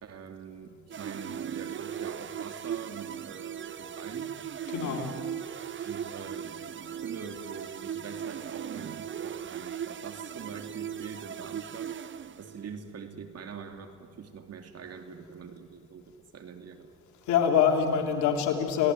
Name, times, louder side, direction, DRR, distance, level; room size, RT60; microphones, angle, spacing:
voice 1, 0.0-4.4 5.8-11.9 12.4-16.9, right 6 dB, 55° right, 6 dB, 3.1 m, -44 dB
sound 1, 0.9-12.8, right 9 dB, 40° right, 0.9 m, -38 dB
voice 2, 4.7-5.1 5.8-5.9 17.3-18.9, left 7 dB, 85° left, 3 dB, 3.2 m, -25 dB
29.5 x 18.0 x 9.8 m, 2.4 s
supercardioid pair, 70°, 29 cm